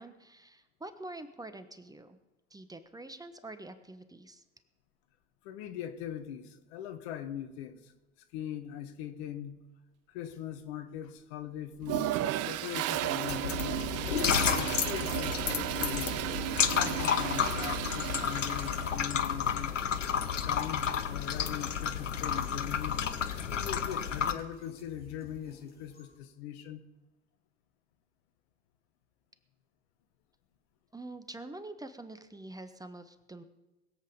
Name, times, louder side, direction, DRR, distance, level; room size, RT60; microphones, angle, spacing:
voice 1, 0.0-2.2 2.5-4.4 30.9-33.4, right 2 dB, 10° right, 10 dB, 1.2 m, -46 dB
voice 2, 5.4-7.9 8.3-9.7 10.1-13.9 14.4-16.3 16.7-19.8 20.4-23.0 23.5-26.8, left 10 dB, 65° left, 9 dB, 1.5 m, -41 dB
Toilet flush, 11.8-19.1, right 13 dB, 45° right, 0.7 m, -34 dB
sound 1, 13.3-24.3, left 8 dB, 90° left, 0.8 m, -31 dB
sound 2, 22.4-26.2, left 3 dB, 25° left, 5.9 m, -57 dB
21.0 x 8.1 x 5.4 m, 1.1 s
hypercardioid pair, 70°, 36 cm